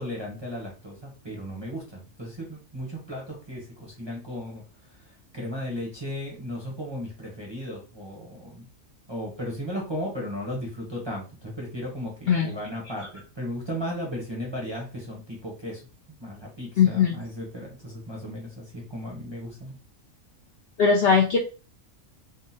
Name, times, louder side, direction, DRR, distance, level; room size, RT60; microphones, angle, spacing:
voice 1, 0.0-4.6 5.0-8.7 9.1-15.8 16.2-19.8, equal, 25° right, -3 dB, 0.7 m, -35 dB
voice 2, 16.8-17.2 20.8-21.4, left 6 dB, 60° left, -1 dB, 0.6 m, -19 dB
3.5 x 2.1 x 2.7 m, 0.34 s
omnidirectional pair, 1.4 m